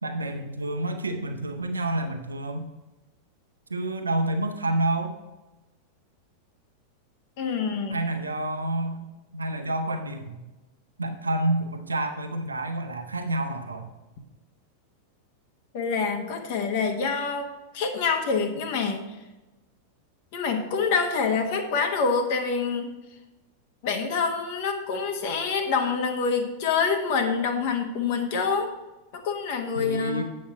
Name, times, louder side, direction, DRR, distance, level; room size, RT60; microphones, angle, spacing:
voice 1, 0.0-2.7 3.7-5.2 7.9-10.4 11.0-13.9 29.7-30.2, right 1 dB, 75° right, 5 dB, 0.8 m, -29 dB
voice 2, 7.4-8.0 15.7-17.5 17.7-19.0 20.3-22.9 23.8-28.7 29.1-30.2, left 5 dB, 50° left, 4 dB, 1.3 m, -26 dB
8.6 x 5.3 x 5.9 m, 1.1 s
figure-of-eight pair, 90°, 0 cm